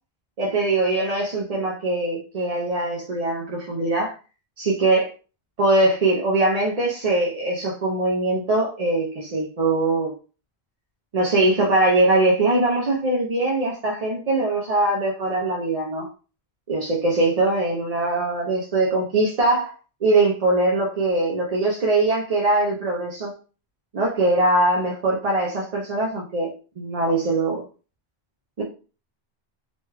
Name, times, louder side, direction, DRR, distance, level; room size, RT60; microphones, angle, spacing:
voice 1, 0.4-4.1 4.6-5.1 5.6-10.1 11.1-16.1 16.7-19.7 20.0-23.3 23.9-26.5 26.8-27.6 28.6-28.7, right 2 dB, 45° right, -3 dB, 0.6 m, -22 dB
3.0 x 2.3 x 3.2 m, 0.35 s
omnidirectional pair, 1.1 m